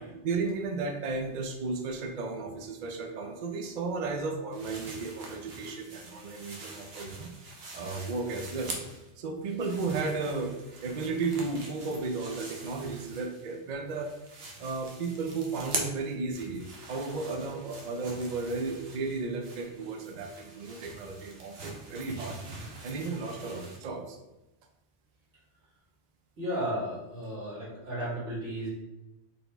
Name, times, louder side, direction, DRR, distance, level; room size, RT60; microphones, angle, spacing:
voice 1, 0.0-7.3 7.7-8.7 9.2-10.6 10.8-14.1 14.6-22.4 22.8-24.2, right 3 dB, 50° right, 3 dB, 0.6 m, -34 dB
sound 1, 4.5-9.1 9.4-13.6 13.9-23.8, right 2 dB, 65° right, 1.0 m, -43 dB
voice 2, 26.4-28.7, equal, 90° right, -7 dB, 2.1 m, -34 dB
4.2 x 3.5 x 3.4 m, 0.96 s
omnidirectional pair, 1.2 m